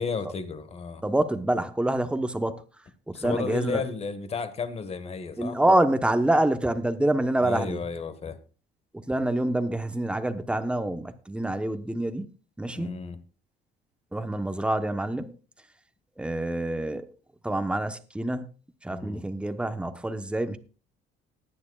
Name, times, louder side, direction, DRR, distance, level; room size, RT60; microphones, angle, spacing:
voice 1, 0.0-1.0 3.1-5.6 7.4-8.4 12.8-13.2 18.9-19.2, left 5 dB, 35° left, 1.6 m, -33 dB
voice 2, 1.0-2.6 3.1-3.8 5.4-7.8 8.9-12.3 12.6-13.0 14.1-15.4 16.2-17.1 17.4-18.5 18.8-20.6, right 1 dB, 5° right, 1.0 m, -26 dB
19.0 x 9.6 x 2.4 m
cardioid pair, 110°, 17 cm